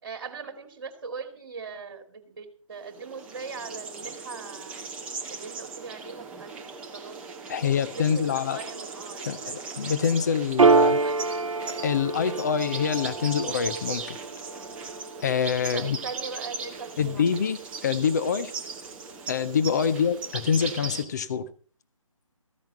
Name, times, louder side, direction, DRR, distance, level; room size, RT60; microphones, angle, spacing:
voice 1, 0.0-4.8 5.3-7.2 7.9-9.6 10.8-11.4 15.7-17.3 19.8-20.0, right 5 dB, 40° right, 9 dB, 2.5 m, -40 dB
sound 1, 2.8-21.0, right 4 dB, 5° right, 0.6 m, -38 dB
voice 2, 7.5-8.6 9.3-11.0 11.8-14.2 15.2-16.0 17.0-17.6 17.8-18.5 19.3-21.5, left 7 dB, 30° left, 12 dB, 0.7 m, -25 dB
Piano, 10.6-17.5, right 4 dB, 70° right, 0.8 m, -27 dB
15.0 x 10.5 x 5.3 m, 0.42 s
figure-of-eight pair, 145°, 17 cm